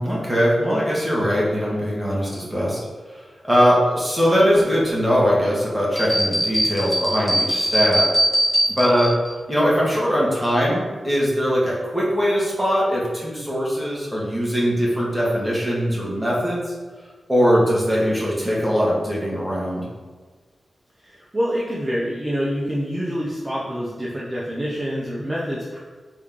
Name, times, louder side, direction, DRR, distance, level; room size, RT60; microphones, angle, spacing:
voice 1, 0.0-2.8 3.1-8.1 8.7-9.1 9.5-16.7 17.3-19.9, equal, ahead, -6 dB, 1.3 m, -21 dB
sound 1, 6.0-9.3, equal, 15° left, 1.1 m, -21 dB
voice 2, 21.0-25.8, equal, 20° right, -6 dB, 0.6 m, -26 dB
3.7 x 3.1 x 3.6 m, 1.4 s
wide cardioid pair, 90°, 0 cm